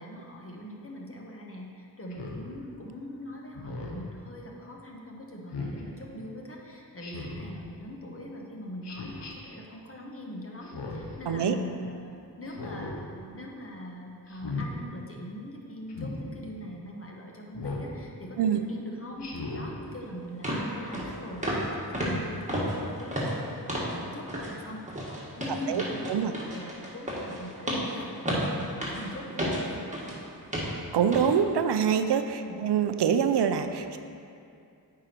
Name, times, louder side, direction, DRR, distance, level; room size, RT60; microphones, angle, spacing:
voice 1, 0.0-24.8 25.1-30.2 32.3-32.6, left 1 dB, 35° left, -1 dB, 1.3 m, -42 dB
Speech synthesizer, 2.1-2.4 3.5-4.1 5.5-5.8 7.0-7.5 8.8-9.3 10.6-11.2 12.5-13.0 14.3-14.7 15.9-16.2 17.5-17.9 19.2-19.7, left 3 dB, 80° left, 1.1 m, -37 dB
sound 1, 19.8-19.9 20.4-20.7 20.9-21.1 21.4-21.7 21.9-24.0 24.3-24.5 24.9-30.2 30.5-30.8 31.1-31.3 31.7-31.9, equal, 15° right, 1.8 m, -32 dB
voice 2, 30.9-34.0, right 7 dB, 80° right, 8 dB, 0.5 m, -25 dB
8.9 x 4.9 x 4.5 m, 2.5 s
cardioid pair, 60°, 41 cm